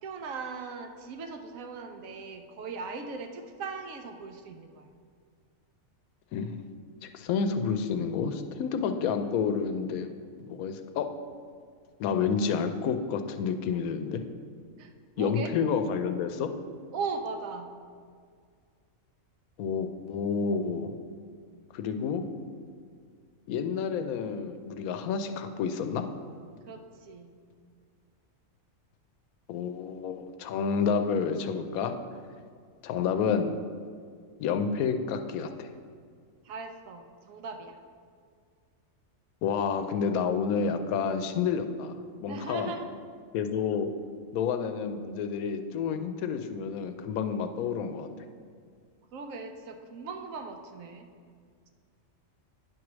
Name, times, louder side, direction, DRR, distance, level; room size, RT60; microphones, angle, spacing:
voice 1, 0.0-4.9 14.8-15.5 16.9-17.7 26.7-27.4 36.4-37.8 42.3-42.9 49.1-51.1, right 4 dB, 75° right, 6 dB, 1.0 m, -39 dB
voice 2, 7.0-10.1 10.5-11.1 12.0-14.2 15.2-16.5 19.6-20.9 21.7-22.3 23.5-26.0 29.5-31.9 32.8-33.5 34.4-35.7 39.4-41.9 42.2-42.7 43.3-43.9 44.3-48.1, left 6 dB, 85° left, 8 dB, 1.0 m, -29 dB
9.4 x 3.2 x 6.0 m, 2.1 s
omnidirectional pair, 1.5 m